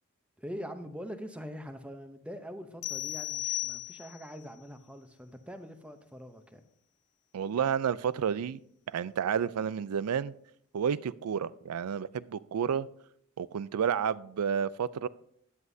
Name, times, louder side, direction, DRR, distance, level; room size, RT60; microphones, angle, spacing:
voice 1, 0.4-6.6, equal, 5° right, 0.7 m, -43 dB
sound 1, 2.8-4.3, left 15 dB, 80° left, 0.4 m, -35 dB
voice 2, 7.3-8.6 8.9-10.3 10.7-12.9 13.4-15.1, right 7 dB, 85° right, 0.4 m, -30 dB
14.0 x 9.5 x 2.7 m
head